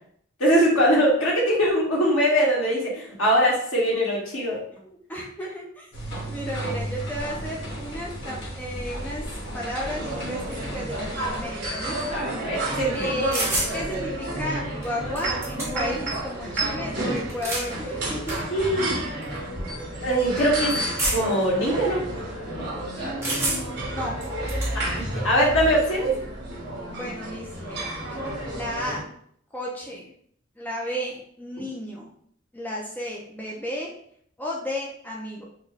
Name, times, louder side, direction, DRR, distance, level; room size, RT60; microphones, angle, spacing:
voice 1, 0.4-4.6 12.1-13.1 18.5-19.0 20.0-20.8 21.1-22.0 22.5-22.7 24.7-26.1, equal, 80° left, -5 dB, 1.5 m, -22 dB
voice 2, 4.8-12.2 12.9-18.4 22.9-24.2 26.9-27.9 28.5-29.1 29.5-30.1 30.6-32.1 32.5-33.9 34.4-35.5, equal, 10° left, -3 dB, 0.5 m, -34 dB
sound 1, 5.9-11.4, equal, 55° left, 1.2 m, -34 dB
sound 2, 9.9-29.0, right 1 dB, 55° right, 1.4 m, -31 dB
sound 3, 13.3-13.7 14.8-14.9 15.2-16.0 17.2-17.7 18.3-18.4 19.2-19.4 21.0-21.4 23.2-23.8 24.2-24.7, right 1 dB, 15° right, 1.0 m, -27 dB
4.5 x 2.2 x 3.4 m, 0.65 s
head